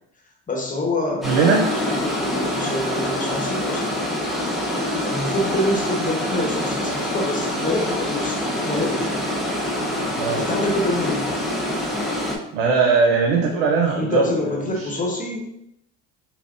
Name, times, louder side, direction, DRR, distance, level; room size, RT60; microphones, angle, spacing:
voice 1, 0.5-4.0 5.0-9.2 10.4-11.3 13.9-15.4, left 1 dB, 25° left, 0 dB, 1.1 m, -26 dB
sound 1, 1.2-12.4, left 1 dB, ahead, 0.8 m, -25 dB
voice 2, 1.2-1.7 10.2-10.4 12.5-14.9, right 4 dB, 90° right, 1 dB, 0.6 m, -20 dB
5.7 x 2.2 x 2.5 m, 0.81 s
supercardioid pair, 85°, 33 cm